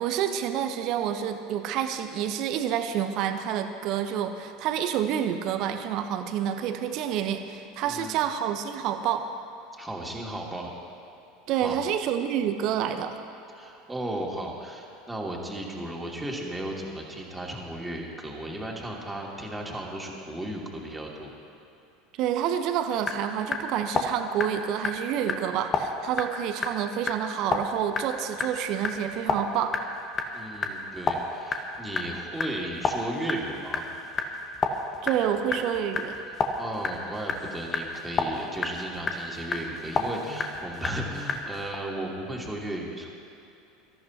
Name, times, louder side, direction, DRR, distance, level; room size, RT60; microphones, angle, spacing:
voice 1, 0.0-9.3 11.5-13.2 22.2-29.8 35.0-36.2, right 9 dB, 50° right, 8 dB, 1.0 m, -28 dB
voice 2, 7.8-8.2 9.8-10.7 11.6-11.8 13.5-21.3 30.3-33.8 36.6-43.1, right 1 dB, 10° right, -2 dB, 2.6 m, -35 dB
sound 1, 22.7-41.7, left 4 dB, 30° left, 1.4 m, -32 dB
24.5 x 14.0 x 2.9 m, 2.8 s
figure-of-eight pair, 75°, 0 cm